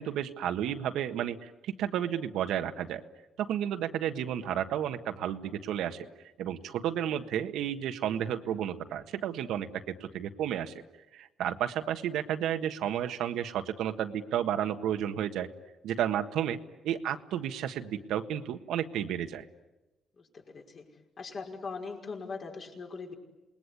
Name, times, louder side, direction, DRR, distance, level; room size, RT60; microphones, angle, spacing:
voice 1, 0.0-3.0 3.4-6.1 6.4-10.7 11.1-15.5 15.8-16.6 16.8-19.4, right 10 dB, 85° right, 8 dB, 1.5 m, -32 dB
voice 2, 20.2-20.9 21.2-23.1, left 4 dB, 50° left, 1 dB, 5.4 m, -40 dB
28.0 x 20.0 x 9.9 m, 1.1 s
cardioid pair, 90°, 0 cm